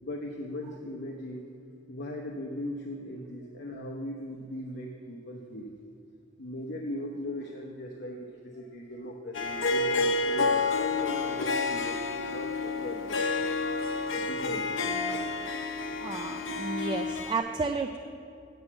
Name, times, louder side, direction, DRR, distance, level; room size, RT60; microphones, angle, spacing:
voice 1, 0.0-1.5 1.9-5.7 6.4-13.4 14.1-15.4, left 1 dB, 60° left, 0 dB, 0.8 m, -39 dB
Harp, 9.3-17.4, left 3 dB, 90° left, 0.6 m, -29 dB
voice 2, 16.0-18.0, right 4 dB, 25° right, 6 dB, 0.3 m, -32 dB
7.9 x 7.6 x 8.4 m, 2.5 s
head